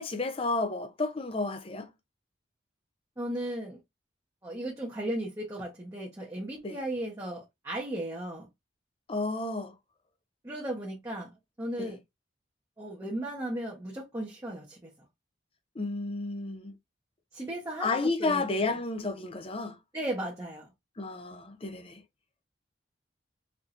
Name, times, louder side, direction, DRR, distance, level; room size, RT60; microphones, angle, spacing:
voice 1, 0.0-1.9 6.6-6.8 9.1-9.7 11.8-11.9 15.8-16.8 17.8-19.8 21.0-22.0, left 3 dB, 30° left, 0.6 m, -31 dB
voice 2, 3.2-3.8 4.4-8.5 10.4-12.0 12.8-14.9 17.3-18.8 19.9-20.7, right 1 dB, 15° right, 1.0 m, -36 dB
4.3 x 2.8 x 2.5 m
head